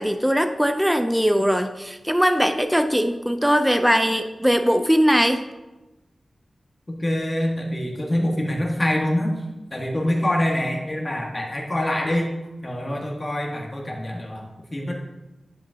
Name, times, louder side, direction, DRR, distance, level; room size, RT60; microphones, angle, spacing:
voice 1, 0.0-5.4, equal, ahead, 8 dB, 0.4 m, -20 dB
voice 2, 6.9-9.3 9.7-12.3 12.6-14.9, left 1 dB, 25° left, 0 dB, 1.4 m, -25 dB
10.5 x 5.2 x 2.7 m, 1.0 s
wide cardioid pair, 95°, 0 cm